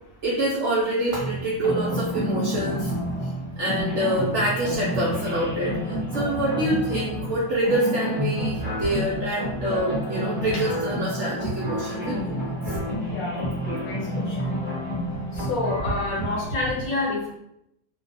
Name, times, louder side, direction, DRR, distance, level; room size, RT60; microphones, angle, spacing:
voice 1, 0.2-2.9 3.6-12.8, right 1 dB, 75° right, -6 dB, 0.7 m, -26 dB
sound 1, 1.1-16.5, equal, 10° right, 0.6 m, -29 dB
voice 2, 13.1-14.0 14.3-14.4 15.4-17.3, left 2 dB, 65° left, -3 dB, 1.0 m, -28 dB
2.6 x 2.0 x 2.5 m, 0.79 s
omnidirectional pair, 1.7 m